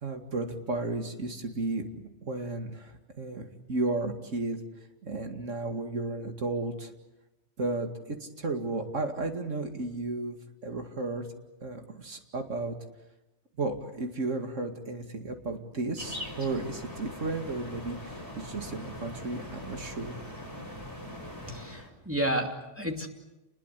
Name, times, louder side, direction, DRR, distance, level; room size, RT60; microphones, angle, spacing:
voice 1, 0.0-4.6 5.0-6.9 7.6-11.2 11.6-12.8 13.6-20.2, right 2 dB, 85° right, 5 dB, 2.7 m, -34 dB
sound 1, 16.0-21.9, left 1 dB, 15° left, 5.0 m, -41 dB
voice 2, 21.5-23.1, right 1 dB, 10° right, 2 dB, 2.7 m, -31 dB
28.5 x 21.0 x 8.4 m, 1.0 s
omnidirectional pair, 1.3 m